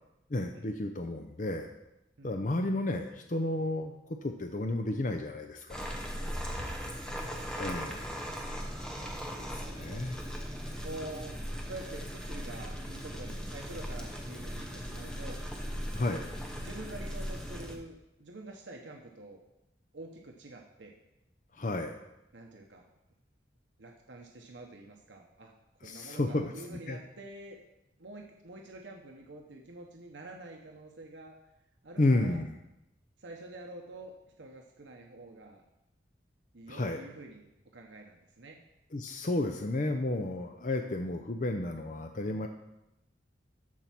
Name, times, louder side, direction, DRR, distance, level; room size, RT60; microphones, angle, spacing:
voice 1, 0.3-1.7 2.2-5.9 7.6-8.2 9.4-10.2 15.9-16.2 21.5-22.0 25.8-27.0 32.0-32.6 36.7-37.0 38.9-42.5, left 2 dB, 45° left, 5 dB, 0.6 m, -32 dB
sound 1, 5.7-17.8, equal, 5° left, 1.0 m, -38 dB
voice 2, 6.4-7.7 9.5-10.0 10.8-15.4 16.5-19.4 19.9-20.9 22.3-22.9 23.8-25.5 25.8-27.6 28.0-31.4 31.8-32.4 33.2-35.6 36.5-37.5 37.7-38.6, right 2 dB, 80° right, 1 dB, 1.0 m, -47 dB
13.5 x 4.6 x 5.9 m, 0.90 s
head